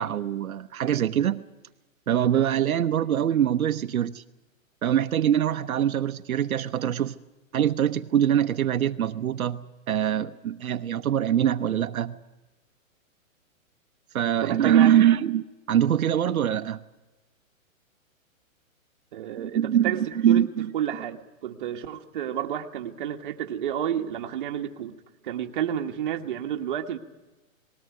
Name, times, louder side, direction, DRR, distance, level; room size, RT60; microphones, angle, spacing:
voice 1, 0.0-1.4 2.1-4.2 4.8-7.2 7.5-12.2 14.1-16.8 19.4-20.7, right 10 dB, 80° right, 7 dB, 1.0 m, -23 dB
voice 2, 14.4-15.1 19.1-20.0 20.3-20.4 20.7-25.0 25.2-27.0, right 10 dB, 35° right, 4 dB, 1.4 m, -30 dB
20.0 x 17.0 x 9.3 m, 1.1 s
hypercardioid pair, 170°, 42 cm